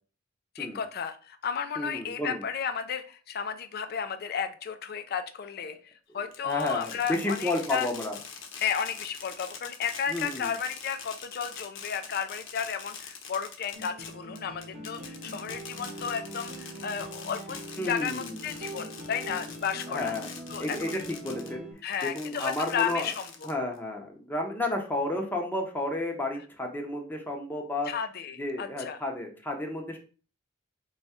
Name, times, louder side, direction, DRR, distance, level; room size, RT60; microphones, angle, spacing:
voice 1, 0.5-7.9 8.6-20.1 20.5-20.9 21.8-23.3 27.9-29.0, left 7 dB, 55° left, 9 dB, 0.4 m, -33 dB
voice 2, 1.8-2.4 6.1-6.2 6.4-8.1 10.1-10.5 17.8-18.4 19.9-20.3 20.6-20.9 21.2-21.7 22.0-23.1 23.4-27.9 28.4-30.0, left 1 dB, 10° left, 1 dB, 0.7 m, -32 dB
Fireworks, 6.3-21.5 21.9-23.8, left 6 dB, 85° left, 0.8 m, -43 dB
sound 1, 13.7-21.7, right 1 dB, 50° right, 1.0 m, -42 dB
4.1 x 2.3 x 4.2 m, 0.38 s
head